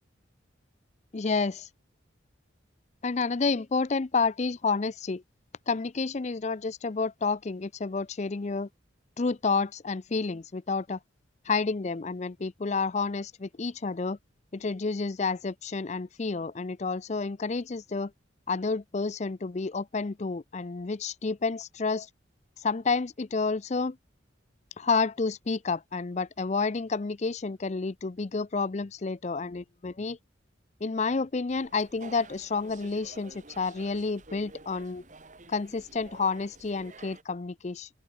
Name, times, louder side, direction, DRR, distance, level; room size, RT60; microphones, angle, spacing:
voice 1, 1.1-1.7 3.0-5.2 5.7-8.7 9.2-11.0 11.5-14.2 14.5-18.1 18.5-22.1 22.6-24.0 24.8-30.2 30.8-35.0 35.5-37.9, left 4 dB, 35° left, 0.5 m, -30 dB
sound 1, 31.5-37.2, right 3 dB, 40° right, 2.2 m, -50 dB
open air
head